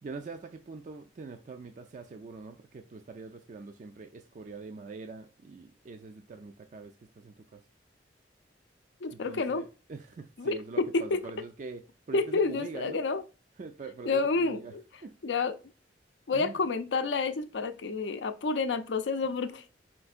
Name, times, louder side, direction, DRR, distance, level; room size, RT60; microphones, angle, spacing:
voice 1, 0.0-7.6 9.1-11.8 12.1-13.0 13.6-14.7 15.0-15.1 16.3-16.6, right 4 dB, 45° right, 0.3 m, -44 dB
voice 2, 9.0-9.6 10.4-11.2 12.1-13.2 14.0-14.8 15.2-15.6 16.3-19.6, left 4 dB, 80° left, 0.5 m, -29 dB
4.4 x 4.2 x 2.4 m
head